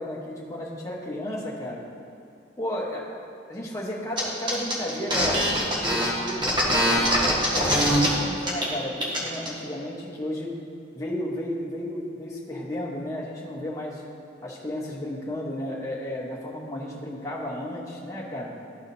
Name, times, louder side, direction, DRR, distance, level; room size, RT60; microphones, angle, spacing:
voice 1, 0.0-1.8 2.6-3.0 3.5-5.4 5.7-10.5 10.9-14.0 14.4-18.5, left 1 dB, 15° left, -5 dB, 1.1 m, -33 dB
sound 1, 4.2-4.3 4.5-8.1 8.4-8.7 9.0-9.5, equal, 25° right, 1.3 m, -23 dB
13.0 x 4.9 x 2.8 m, 2.6 s
head